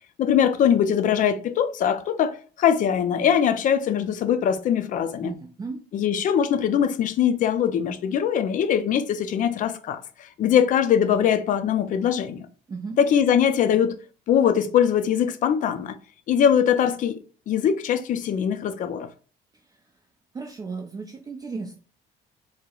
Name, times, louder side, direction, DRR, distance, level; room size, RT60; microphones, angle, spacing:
voice 1, 0.2-5.3 5.9-12.5 13.0-14.0 14.3-16.0 16.3-19.1, left 8 dB, 50° left, 0.4 m, -22 dB
voice 2, 5.2-5.8 12.7-13.0 19.5-19.8 20.3-21.8, right 4 dB, 25° right, 0.4 m, -35 dB
4.4 x 2.0 x 2.3 m
cardioid pair, 110°, 17 cm